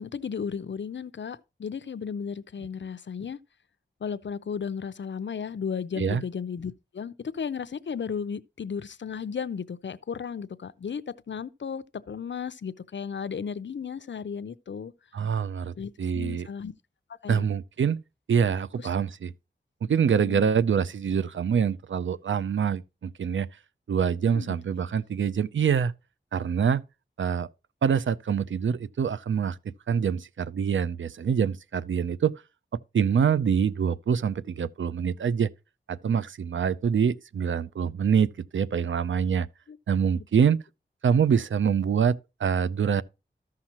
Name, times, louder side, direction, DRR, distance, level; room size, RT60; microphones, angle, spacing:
voice 1, 0.0-3.4 4.0-14.9 15.8-16.7 17.2-17.5 18.8-18.9 20.1-20.5 24.3-24.6 39.7-39.8, left 6 dB, 70° left, 0.6 m, -34 dB
voice 2, 15.1-16.5 17.3-18.0 18.3-19.3 19.8-23.5 23.9-25.9 26.3-26.8 27.2-27.5 27.8-32.4 32.9-35.5 35.9-39.5 39.9-40.6 41.0-43.0, right 7 dB, 75° right, 0.5 m, -25 dB
14.0 x 5.7 x 2.9 m
wide cardioid pair, 60°, 20 cm